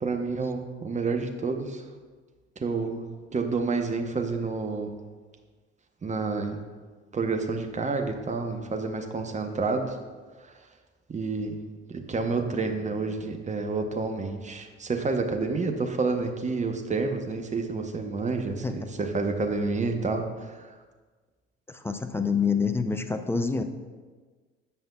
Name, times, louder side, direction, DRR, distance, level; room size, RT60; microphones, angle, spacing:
voice 1, 0.0-1.8 2.6-4.9 6.0-6.6 7.1-10.0 10.4-10.5 11.1-11.6 11.9-20.7, right 4 dB, 20° right, 4 dB, 0.9 m, -29 dB
voice 2, 21.7-23.6, left 5 dB, 5° left, 8 dB, 0.4 m, -27 dB
16.0 x 5.5 x 2.3 m, 1.4 s
figure-of-eight pair, 55°, 37 cm